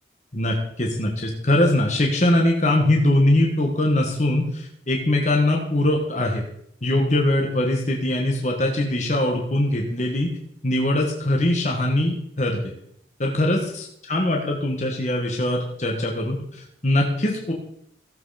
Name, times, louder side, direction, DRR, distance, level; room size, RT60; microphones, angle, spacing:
voice 1, 0.3-6.4 6.8-10.3 10.6-12.7 13.2-17.5, left 1 dB, 40° left, 1 dB, 1.5 m, -22 dB
15.0 x 7.7 x 4.2 m, 0.71 s
head